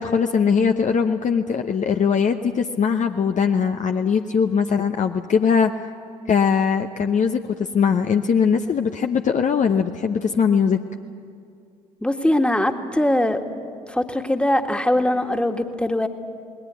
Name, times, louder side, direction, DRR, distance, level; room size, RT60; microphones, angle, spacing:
voice 1, 0.0-5.7 6.3-10.8, left 6 dB, 40° left, 6 dB, 0.8 m, -20 dB
voice 2, 12.0-13.4 13.9-16.1, left 1 dB, 5° left, 5 dB, 1.8 m, -21 dB
28.5 x 19.5 x 8.3 m, 2.4 s
figure-of-eight pair, 45°, 19 cm